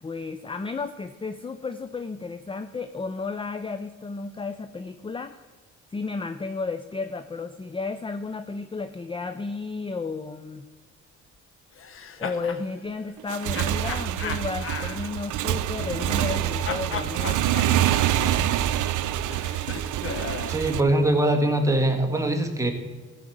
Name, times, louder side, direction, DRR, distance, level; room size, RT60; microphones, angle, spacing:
voice 1, 0.0-5.4 5.9-10.6 12.2-17.6, left 4 dB, 20° left, 10 dB, 0.5 m, -33 dB
sound 1, 11.8-12.6 13.5-16.4 16.6-20.6, left 6 dB, 45° left, 1.0 m, -36 dB
Motorcycle / Engine, 13.2-20.8, right 12 dB, 80° right, 0.6 m, -26 dB
voice 2, 20.5-22.7, right 1 dB, 10° right, 4 dB, 1.7 m, -22 dB
15.0 x 5.1 x 7.8 m, 1.3 s
cardioid pair, 90°, 30 cm